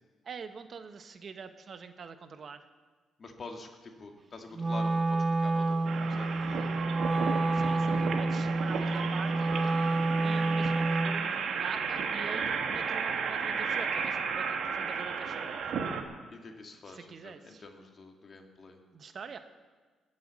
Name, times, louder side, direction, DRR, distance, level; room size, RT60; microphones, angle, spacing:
voice 1, 0.2-2.7 7.5-9.6 10.2-15.6 16.9-17.7 18.9-19.4, right 5 dB, 50° right, 9 dB, 1.0 m, -44 dB
voice 2, 3.2-6.9 7.4-7.7 16.3-18.8, left 3 dB, 40° left, 3 dB, 2.2 m, -47 dB
Wind instrument woodwind instrument, 4.5-11.3, right 2 dB, 30° right, 0.6 m, -29 dB
sound 1, 5.9-16.0, right 6 dB, 65° right, 1.6 m, -33 dB
20.0 x 7.7 x 7.5 m, 1.4 s
cardioid pair, 90°, 0 cm